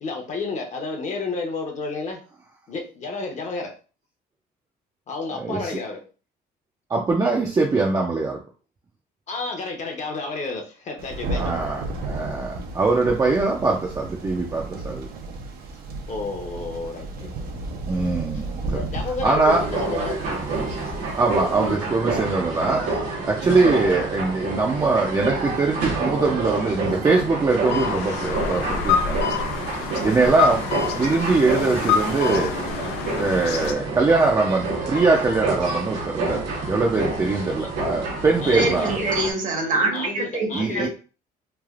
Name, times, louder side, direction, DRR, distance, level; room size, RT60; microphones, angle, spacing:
voice 1, 0.0-2.2 2.7-3.7 5.1-6.0 9.3-11.5 16.1-17.3 18.3-20.3 23.8-24.1 38.4-39.3 39.9-40.9, left 3 dB, 45° left, 2 dB, 0.8 m, -31 dB
voice 2, 5.3-5.7 6.9-8.4 11.3-15.1 17.9-18.8 19.2-19.6 21.2-29.4 29.7-32.5 33.1-36.4 36.7-38.9 40.5-40.9, right 3 dB, 20° right, -1 dB, 0.5 m, -22 dB
Thunder, 11.0-21.8, right 2 dB, 65° right, 0.6 m, -33 dB
sound 1, 19.5-39.3, right 3 dB, 90° right, 1.1 m, -28 dB
sound 2, 27.7-33.7, left 7 dB, 80° left, 0.5 m, -26 dB
voice 3, 38.5-40.9, right 3 dB, 50° right, 3 dB, 1.0 m, -25 dB
3.3 x 2.4 x 2.4 m, 0.37 s
cardioid pair, 110°, 17 cm